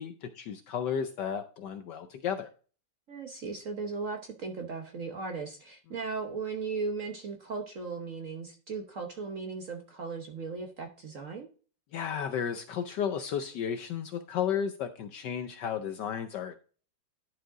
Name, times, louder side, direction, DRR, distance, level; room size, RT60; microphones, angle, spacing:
voice 1, 0.0-2.5 11.9-16.6, left 8 dB, 70° left, 8 dB, 1.1 m, -33 dB
voice 2, 3.1-11.5, right 4 dB, 50° right, 4 dB, 1.0 m, -37 dB
11.0 x 4.9 x 3.7 m, 0.38 s
omnidirectional pair, 2.4 m